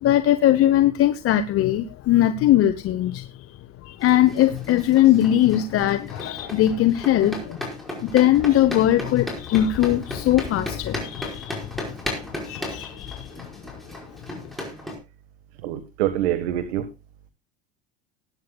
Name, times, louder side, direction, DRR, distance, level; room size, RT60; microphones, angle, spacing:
voice 1, 0.0-3.3 3.8-7.6 8.0-11.6 12.4-13.4, left 12 dB, 45° left, 10 dB, 1.0 m, -20 dB
sound 1, 4.0-15.0, left 1 dB, ahead, 5.2 m, -36 dB
voice 2, 15.6-16.9, right 12 dB, 85° right, 10 dB, 1.5 m, -25 dB
20.0 x 9.6 x 2.3 m, 0.27 s
supercardioid pair, 115°, 31 cm